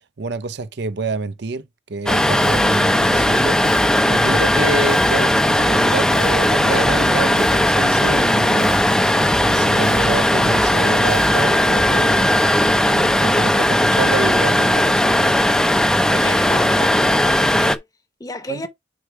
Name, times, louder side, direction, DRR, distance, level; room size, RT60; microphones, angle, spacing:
voice 1, 0.2-1.6 1.9-3.6 4.1-8.9 9.4-12.3 12.8-15.3 18.5-18.7, right 3 dB, 60° right, 0.6 m, -27 dB
Bass guitar, 2.1-12.0, left 1 dB, 85° left, 0.9 m, -33 dB
sound 1, 2.1-17.8, left 1 dB, 5° left, 0.5 m, -17 dB
voice 2, 16.1-17.8 18.2-18.7, left 2 dB, 20° left, 0.9 m, -30 dB
4.8 x 4.6 x 4.7 m
head